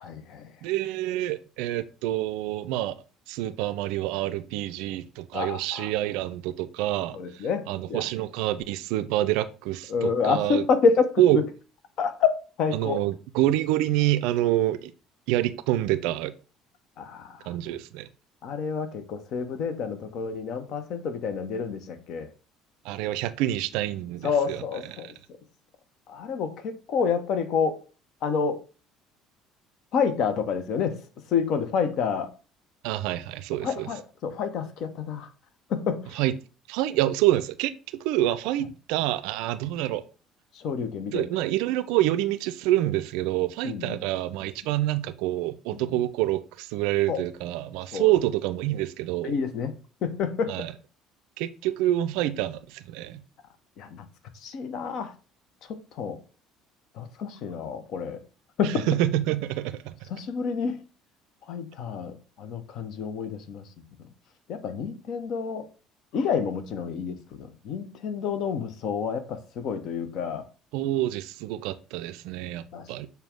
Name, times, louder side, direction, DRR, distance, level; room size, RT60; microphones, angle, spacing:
voice 1, 0.0-0.6 5.3-5.9 7.1-8.1 9.9-11.5 12.0-12.3 12.6-13.1 17.0-17.6 18.4-22.3 24.2-25.4 26.1-27.8 28.2-28.6 29.9-32.3 33.6-35.3 35.7-36.2 40.5-41.3 43.6-44.0 45.7-46.0 47.1-47.2 47.9-48.1 49.2-50.7 53.8-54.1 54.3-55.1 55.6-56.2 56.9-58.2 58.6-58.9 60.1-60.8 61.4-63.7 64.5-65.7 66.1-70.5 72.7-73.1, left 6 dB, 55° left, 0.6 m, -29 dB
voice 2, 0.6-3.0 3.3-10.6 11.2-11.4 12.7-14.9 15.3-16.3 17.5-18.1 22.8-24.6 32.8-33.9 36.2-36.3 36.7-40.0 41.1-49.3 50.5-50.7 51.4-53.2 58.9-60.0 70.7-73.1, right 14 dB, 65° right, 0.3 m, -27 dB
6.7 x 2.3 x 3.5 m
figure-of-eight pair, 55°, 0 cm